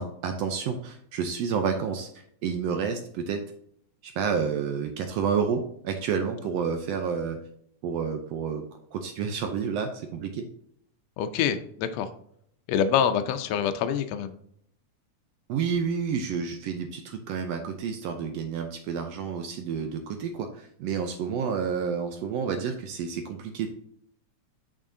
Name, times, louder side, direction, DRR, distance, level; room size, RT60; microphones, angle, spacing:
voice 1, 0.0-3.4 4.0-7.4 7.8-8.7 8.9-10.5 15.5-23.7, right 6 dB, 80° right, 6 dB, 1.5 m, -30 dB
voice 2, 11.2-12.1 12.7-14.3, left 8 dB, 75° left, 8 dB, 1.6 m, -26 dB
6.3 x 6.2 x 2.7 m, 0.69 s
omnidirectional pair, 3.5 m